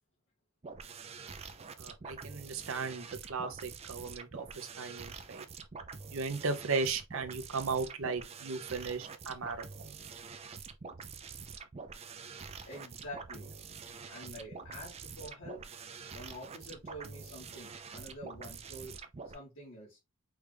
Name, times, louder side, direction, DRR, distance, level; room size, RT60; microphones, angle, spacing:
sound 1, 0.6-19.4, right 5 dB, 30° right, 0.4 m, -46 dB
voice 1, 1.8-5.4 6.1-9.9, right 4 dB, 60° right, 0.7 m, -36 dB
voice 2, 12.6-13.5 14.1-15.6 16.1-18.9 19.3-20.0, equal, 60° left, 1.6 m, -47 dB
4.7 x 2.5 x 3.2 m
head